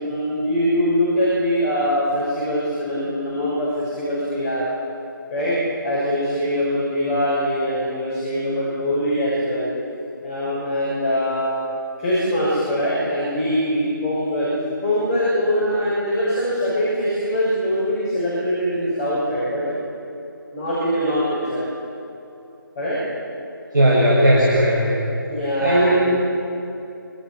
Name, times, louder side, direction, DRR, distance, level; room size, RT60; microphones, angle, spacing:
voice 1, 0.0-4.6 5.3-9.7 10.2-11.6 12.0-14.5 14.8-19.7 20.5-21.7 22.7-23.0 25.3-26.0, equal, 20° left, -8 dB, 6.6 m, -22 dB
voice 2, 23.7-24.9 25.6-26.0, right 1 dB, 60° right, -5 dB, 6.8 m, -16 dB
25.5 x 25.5 x 6.0 m, 2.7 s
figure-of-eight pair, 155°, 12 cm